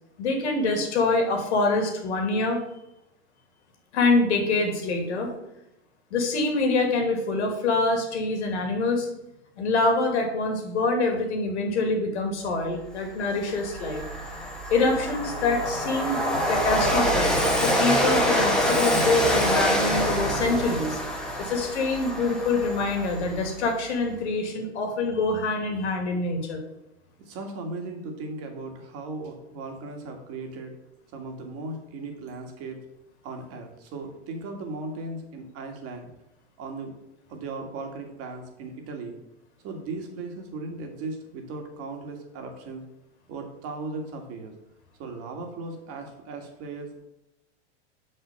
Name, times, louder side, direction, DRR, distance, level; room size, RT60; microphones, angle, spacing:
voice 1, 0.2-2.6 3.9-5.3 6.1-9.1 9.6-14.0 14.7-17.3 17.6-21.0 21.4-26.6, left 3 dB, 75° left, 3 dB, 2.7 m, -25 dB
Train, 12.8-12.9 13.3-23.7, equal, ahead, 1.6 m, -26 dB
voice 2, 27.2-30.7 31.1-32.8 33.2-36.1 36.6-36.9 37.3-39.2 39.6-42.8 43.3-44.5 45.0-46.9, right 3 dB, 45° right, 4 dB, 2.1 m, -37 dB
6.0 x 5.6 x 7.0 m, 0.87 s
hypercardioid pair, 110°, 34 cm